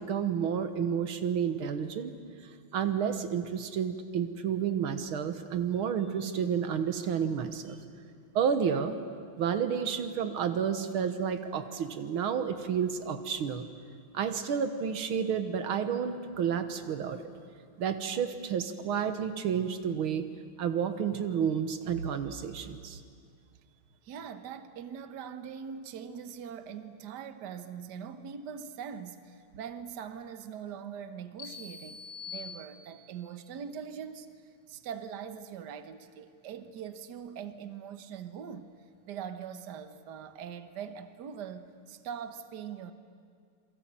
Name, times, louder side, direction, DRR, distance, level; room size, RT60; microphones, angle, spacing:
voice 1, 0.0-2.1 2.7-7.8 8.4-9.0 9.4-13.7 14.1-17.3 17.8-20.3 20.6-23.0, right 7 dB, 85° right, 9 dB, 2.1 m, -30 dB
voice 2, 24.0-38.7 39.1-42.9, right 7 dB, 60° right, 10 dB, 1.6 m, -42 dB
sound 1, 31.4-33.3, left 5 dB, 50° left, 6.3 m, -44 dB
27.5 x 23.0 x 8.9 m, 2.1 s
omnidirectional pair, 2.3 m